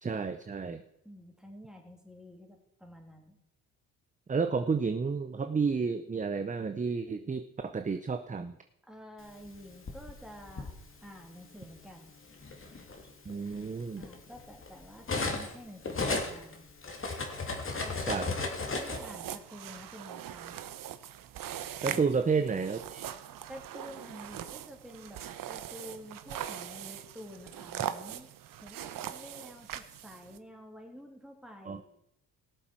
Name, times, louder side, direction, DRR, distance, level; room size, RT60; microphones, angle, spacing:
voice 1, 0.0-0.8 4.3-8.5 13.3-14.1 18.1-18.3 21.8-23.0 31.6-31.8, right 5 dB, 20° right, 8 dB, 0.7 m, -31 dB
voice 2, 1.0-3.4 8.9-10.7 11.0-12.1 14.0-16.7 17.8-18.0 18.6-20.7 23.5-25.2 25.5-28.3 28.6-31.8, equal, ahead, 1 dB, 3.1 m, -49 dB
Cutlery silverware, 9.4-10.7 11.7-11.9 12.3-15.5 15.8-19.0, left 3 dB, 35° left, 2.3 m, -35 dB
sound 1, 18.7-30.4, right 10 dB, 60° right, 0.9 m, -41 dB
17.5 x 7.3 x 4.6 m, 0.78 s
supercardioid pair, 75°, 37 cm